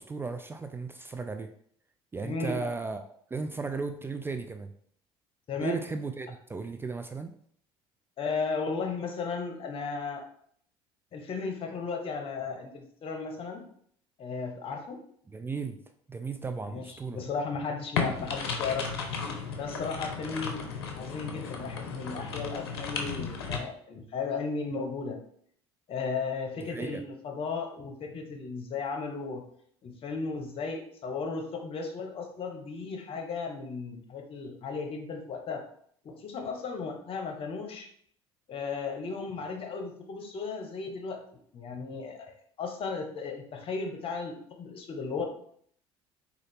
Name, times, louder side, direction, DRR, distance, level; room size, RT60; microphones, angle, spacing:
voice 1, 0.0-1.5 2.1-4.7 5.6-7.3 15.3-15.8 16.1-17.2 26.6-27.0, right 4 dB, 15° right, 7 dB, 0.3 m, -35 dB
voice 2, 2.2-2.7 5.5-5.8 8.2-10.2 11.1-13.7 14.2-15.0 16.6-18.9 19.5-20.6 20.9-25.2 25.9-29.4 29.8-35.6 36.0-37.9 38.5-41.2 41.5-45.2, left 4 dB, 45° left, 4 dB, 0.9 m, -35 dB
sound 1, 18.0-23.6, left 5 dB, 90° left, 0.5 m, -34 dB
3.8 x 2.4 x 3.4 m, 0.63 s
hypercardioid pair, 65°, 13 cm